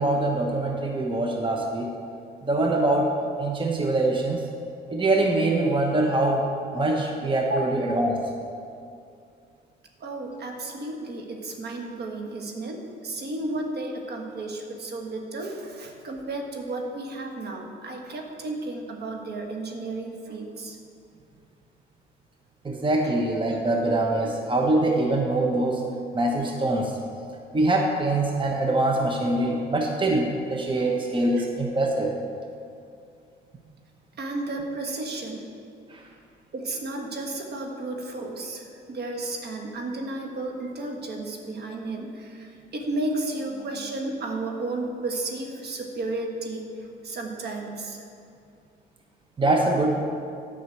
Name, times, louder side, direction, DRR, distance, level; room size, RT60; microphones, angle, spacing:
voice 1, 0.0-1.9 2.4-3.1 3.4-4.4 4.9-6.4 6.7-8.1 22.6-25.8 26.1-26.9 27.5-32.1 49.4-50.0, right 2 dB, 25° right, 1 dB, 1.0 m, -23 dB
voice 2, 10.0-20.8 23.0-23.1 31.4-31.5 34.2-35.5 36.5-46.7 47.0-48.0, right 2 dB, 55° right, 2 dB, 1.5 m, -33 dB
9.6 x 5.5 x 7.7 m, 2.4 s
cardioid pair, 90°, 20 cm